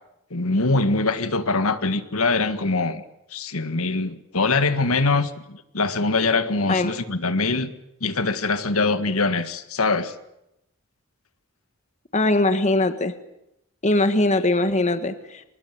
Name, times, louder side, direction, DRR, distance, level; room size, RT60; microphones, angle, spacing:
voice 1, 0.3-3.0 3.3-7.7 8.0-10.1, left 3 dB, 80° left, 1.7 m, -23 dB
voice 2, 12.1-13.1 13.8-15.4, left 2 dB, 35° left, 1.5 m, -21 dB
25.0 x 20.5 x 9.3 m
head